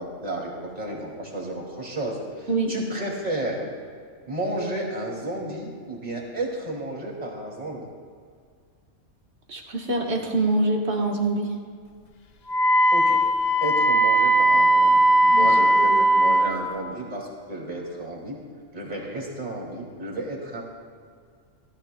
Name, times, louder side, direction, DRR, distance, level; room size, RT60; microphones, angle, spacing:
voice 1, 0.0-3.7 4.3-7.9 12.9-13.2 13.6-18.4 18.7-20.6, right 1 dB, 30° right, -2 dB, 2.4 m, -32 dB
voice 2, 9.5-11.5 15.3-16.4, right 2 dB, 55° right, 0 dB, 1.6 m, -26 dB
Wind instrument woodwind instrument, 12.5-16.5, right 1 dB, 65° left, 0.4 m, -18 dB
17.5 x 13.0 x 2.2 m, 2.1 s
omnidirectional pair, 1.4 m